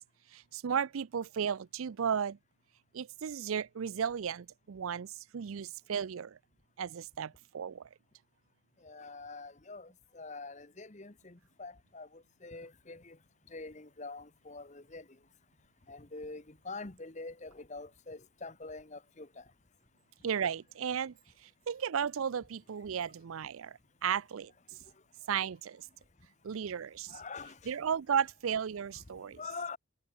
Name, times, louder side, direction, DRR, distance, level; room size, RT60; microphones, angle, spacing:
voice 1, 0.3-2.4 2.9-5.1 5.3-6.3 6.8-7.8 20.2-21.1 21.7-23.7 24.0-24.5 25.3-25.8 26.4-27.1 27.7-29.4, right 7 dB, 85° right, 0.5 m, -34 dB
voice 2, 8.8-13.2 13.5-15.0 15.9-19.4 27.1-27.7 28.9-29.0 29.4-29.8, left 3 dB, 35° left, 1.2 m, -45 dB
head